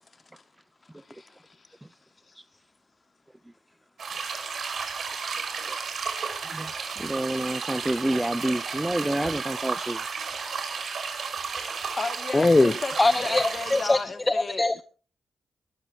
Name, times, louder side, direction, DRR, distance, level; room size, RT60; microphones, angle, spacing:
voice 1, 0.9-1.8 2.3-2.4 12.0-14.6, left 3 dB, 40° left, 3.1 m, -35 dB
sound 1, 4.0-14.0, right 5 dB, 65° right, 5.3 m, -33 dB
voice 2, 7.0-10.0, right 1 dB, 10° right, 0.6 m, -28 dB
voice 3, 12.3-12.7 13.0-14.0 14.2-14.8, left 2 dB, 25° left, 0.9 m, -21 dB
22.5 x 13.0 x 2.9 m
cardioid pair, 60°, 0 cm